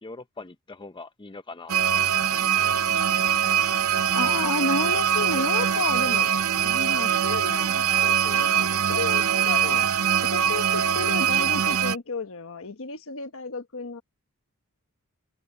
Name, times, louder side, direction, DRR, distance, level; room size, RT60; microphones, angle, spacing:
voice 1, 0.0-2.2 2.5-3.1, left 3 dB, 20° left, 0.6 m, -43 dB
sound 1, 1.7-12.0, right 9 dB, 65° right, 0.6 m, -23 dB
voice 2, 4.1-6.3 6.6-9.9 10.2-14.0, left 3 dB, 65° left, 1.2 m, -32 dB
head